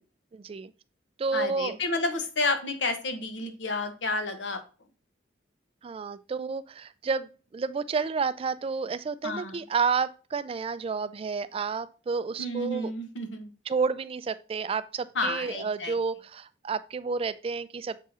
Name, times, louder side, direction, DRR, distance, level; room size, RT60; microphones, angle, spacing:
voice 1, 0.3-0.7 1.2-1.8 5.8-12.9 13.7-18.0, right 5 dB, 30° right, 0.3 m, -30 dB
voice 2, 1.3-4.6 9.2-9.6 12.4-13.5 15.1-15.9, left 2 dB, 80° left, 1.1 m, -30 dB
7.3 x 3.6 x 4.1 m
head